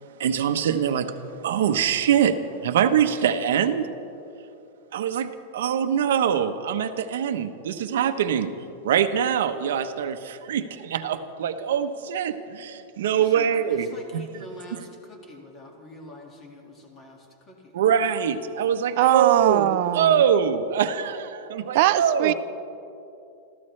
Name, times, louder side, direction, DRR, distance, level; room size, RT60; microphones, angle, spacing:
voice 1, 0.2-1.1 1.4-2.4 2.6-3.9 4.9-8.5 8.8-14.2 14.7-14.8 17.7-22.3, right 8 dB, 80° right, 8 dB, 0.9 m, -23 dB
voice 2, 13.3-17.7, left 1 dB, 20° left, 1 dB, 2.0 m, -45 dB
voice 3, 19.0-20.1 21.7-22.3, right 14 dB, 45° right, 14 dB, 0.5 m, -20 dB
28.0 x 14.5 x 3.3 m, 2.7 s
supercardioid pair, 175°, 0 cm